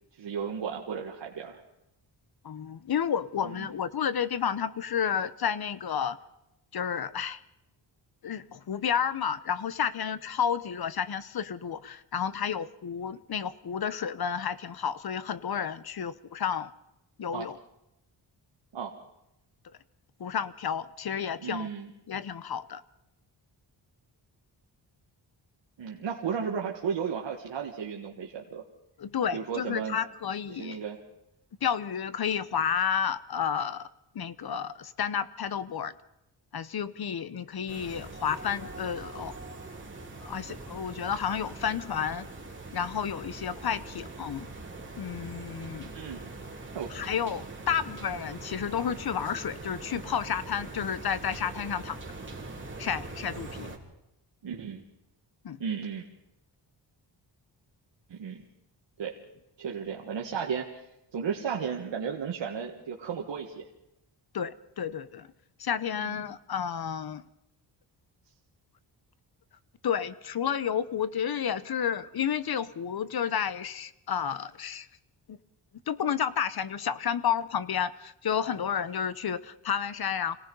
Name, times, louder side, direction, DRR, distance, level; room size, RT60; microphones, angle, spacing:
voice 1, 0.2-1.6 3.4-3.7 17.3-17.5 18.7-18.9 21.4-21.9 25.8-28.6 29.3-30.0 30.5-31.0 45.9-46.2 46.8-46.9 54.4-54.8 55.6-56.1 58.1-58.4 59.0-59.1 59.6-60.8 61.1-63.6 66.0-66.3, right 7 dB, 70° right, 0 dB, 1.7 m, -34 dB
voice 2, 2.4-6.2 6.7-7.4 8.2-16.7 17.2-17.6 20.2-21.7 22.1-22.8 29.0-30.8 31.6-33.9 34.1-35.9 36.5-39.3 40.2-42.3 42.7-44.5 45.0-45.9 46.9-52.0 52.8-53.7 55.4-55.6 64.3-65.3 65.6-67.2 69.8-74.9 75.3-75.4 75.9-80.4, left 8 dB, 55° left, 15 dB, 0.9 m, -31 dB
sound 1, 37.7-53.8, right 2 dB, 25° right, 3.2 m, -42 dB
26.0 x 18.0 x 5.4 m, 0.88 s
wide cardioid pair, 100°, 45 cm